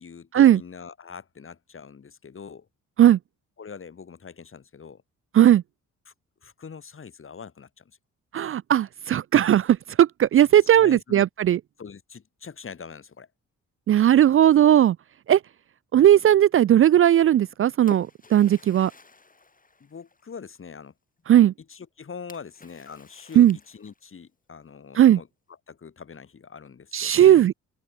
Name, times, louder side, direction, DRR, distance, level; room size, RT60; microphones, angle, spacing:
voice 1, 0.0-2.7 3.6-5.0 6.1-6.2 6.4-7.8 10.8-11.2 11.8-13.3 19.8-20.9 21.7-25.3 25.7-27.4, left 6 dB, 40° left, 3.1 m, -42 dB
voice 2, 8.3-11.6 13.9-15.0 15.3-15.4 15.9-18.9 21.3-21.5 23.4-23.6 25.0-25.2 26.9-27.5, right 11 dB, 45° right, 0.4 m, -17 dB
Splash splatter, 17.3-20.5 22.3-24.2, left 3 dB, 25° left, 4.4 m, -50 dB
open air
cardioid pair, 75°, 32 cm